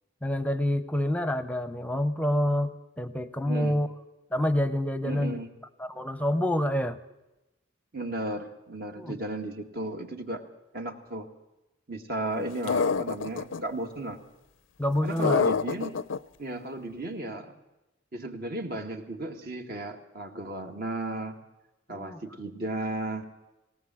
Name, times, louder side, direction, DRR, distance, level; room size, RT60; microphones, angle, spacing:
voice 1, 0.2-3.9 4.3-5.4 5.8-7.0 9.0-9.2 14.8-15.5 21.9-22.2, left 1 dB, 10° left, 13 dB, 0.8 m, -27 dB
voice 2, 3.5-3.8 5.0-5.5 7.9-10.5 10.7-11.3 11.9-14.2 15.0-16.0 16.4-17.5 18.1-21.4 21.9-23.2, right 2 dB, 50° right, 5 dB, 2.1 m, -34 dB
sound 1, 12.7-13.6 15.2-16.2, left 5 dB, 85° left, 0.6 m, -26 dB
19.0 x 18.0 x 7.7 m, 0.97 s
head